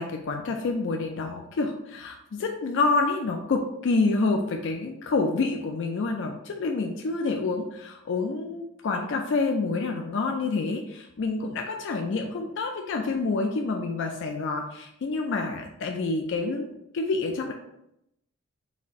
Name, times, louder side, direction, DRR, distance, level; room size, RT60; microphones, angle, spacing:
voice 1, 0.0-16.7 16.9-17.5, left 3 dB, 60° left, 3 dB, 0.4 m, -28 dB
4.1 x 2.5 x 4.1 m, 0.81 s
head